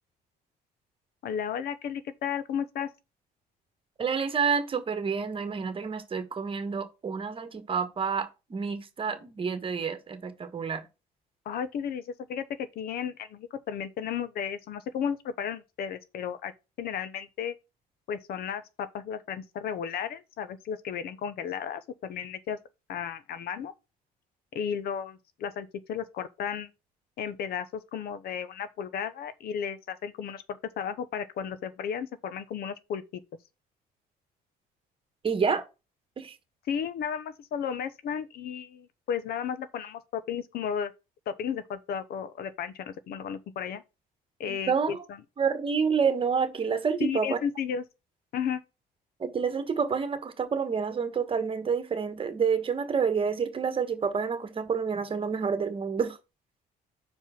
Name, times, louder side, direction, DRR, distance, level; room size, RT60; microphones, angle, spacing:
voice 1, 1.2-2.9 11.5-16.5 16.8-17.5 18.1-22.6 22.9-23.7 24.5-26.7 27.2-33.0 36.7-40.9 41.3-43.8 44.4-45.2 47.0-47.8 48.3-48.6, left 8 dB, 65° left, 0.9 m, -34 dB
voice 2, 4.0-10.9 35.2-35.6 36.2-36.4 44.5-45.0 45.4-47.4 49.2-56.2, right 6 dB, 30° right, 1.3 m, -28 dB
5.3 x 4.8 x 5.8 m
cardioid pair, 110°, 17 cm